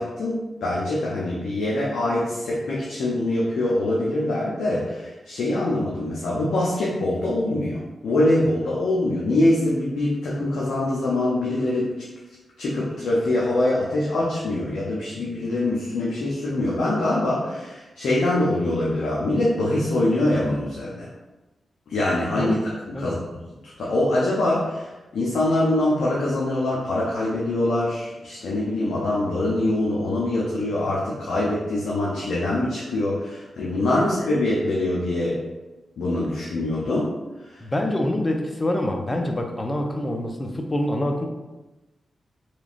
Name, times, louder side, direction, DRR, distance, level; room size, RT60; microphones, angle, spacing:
voice 1, 0.0-11.9 12.6-21.1 21.9-23.3 23.6-35.4 36.0-37.1 37.4-37.6, left 1 dB, 80° left, -6 dB, 0.5 m, -24 dB
voice 2, 22.9-23.2 37.6-41.3, left 1 dB, 30° left, 3 dB, 0.5 m, -26 dB
3.1 x 2.4 x 2.4 m, 1.1 s
supercardioid pair, 45°, 0 cm